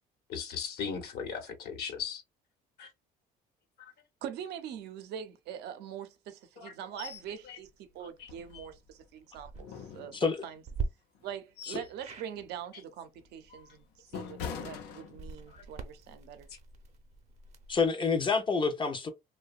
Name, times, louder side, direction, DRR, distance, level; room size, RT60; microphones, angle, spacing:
voice 1, 0.3-2.2 2.8-2.9 6.6-6.7 7.5-7.6, left 6 dB, 70° left, 0.9 m, -37 dB
voice 2, 4.2-7.7 7.9-10.6 11.2-16.5, right 9 dB, 80° right, 0.6 m, -43 dB
sound 1, 7.0-7.3 7.6-7.7 8.2-9.1 9.6-10.6 11.2-12.0 12.3-12.6 13.1-15.6 16.0-16.2, left 6 dB, 90° left, 0.6 m, -43 dB
sound 2, 9.3-9.6 10.6-10.9 12.0-12.3 15.0-17.9, right 4 dB, 40° right, 0.6 m, -41 dB
voice 3, 10.1-10.4 11.7-11.8 17.7-19.1, left 4 dB, 30° left, 0.5 m, -28 dB
2.7 x 2.2 x 2.3 m
cardioid pair, 110°, 17 cm